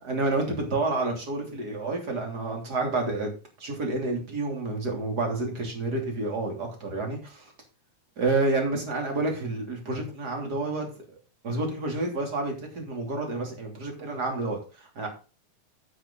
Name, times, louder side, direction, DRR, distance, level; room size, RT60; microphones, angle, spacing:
voice 1, 0.0-3.3 3.6-7.5 8.2-11.0 11.4-15.1, right 2 dB, 30° right, 2 dB, 3.2 m, -29 dB
9.1 x 8.6 x 3.9 m, 0.34 s
omnidirectional pair, 4.1 m